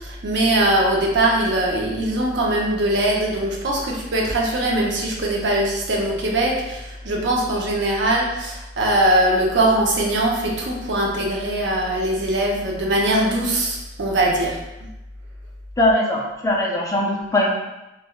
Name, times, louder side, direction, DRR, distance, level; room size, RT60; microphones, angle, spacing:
voice 1, 0.0-14.6, right 1 dB, 85° right, -2 dB, 0.6 m, -21 dB
voice 2, 15.8-17.5, left 1 dB, 20° left, -2 dB, 0.4 m, -20 dB
3.3 x 2.2 x 2.2 m, 0.98 s
head